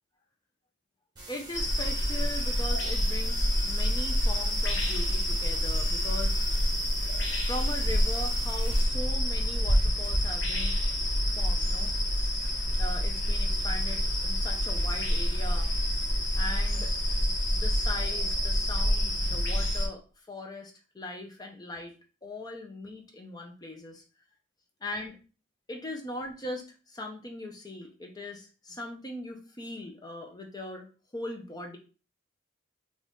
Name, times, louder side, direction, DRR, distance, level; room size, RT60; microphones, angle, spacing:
sound 1, 1.2-8.8, right 2 dB, 20° right, 1.2 m, -46 dB
voice 1, 1.3-6.4 7.4-10.8 11.4-11.9 12.8-15.7 16.3-16.9 17.2-21.9 22.2-24.0 24.8-25.2 25.7-30.9 31.1-31.8, left 1 dB, 20° left, 3 dB, 0.5 m, -40 dB
sound 2, 1.5-19.9, equal, 70° left, 1.0 m, -27 dB
4.0 x 2.4 x 3.6 m, 0.35 s
head